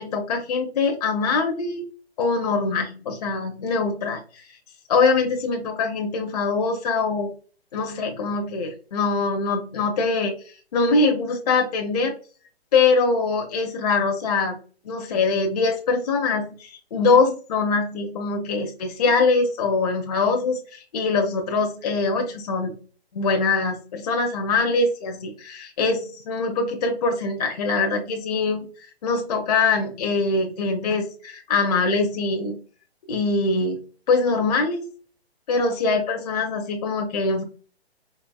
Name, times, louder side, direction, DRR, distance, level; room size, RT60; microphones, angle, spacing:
voice 1, 0.0-1.9 2.2-4.2 4.9-7.3 7.7-12.1 12.7-14.6 14.8-22.7 23.1-28.7 29.0-32.6 33.1-34.8 35.5-37.4, left 4 dB, 40° left, 2 dB, 0.6 m, -23 dB
4.1 x 2.8 x 2.3 m, 0.39 s
hypercardioid pair, 155°, 32 cm